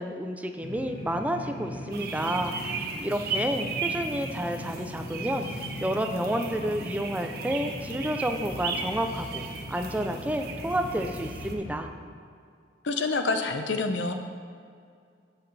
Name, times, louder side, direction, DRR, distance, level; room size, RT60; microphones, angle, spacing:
voice 1, 0.0-11.9, right 1 dB, 10° right, 6 dB, 0.5 m, -30 dB
sound 1, 0.6-11.8, left 1 dB, 40° left, 2.1 m, -39 dB
sound 2, 1.9-11.5, right 4 dB, 55° right, 0.9 m, -36 dB
voice 2, 12.8-14.1, left 3 dB, 80° left, 6 dB, 0.8 m, -27 dB
16.0 x 5.9 x 3.3 m, 2.3 s
head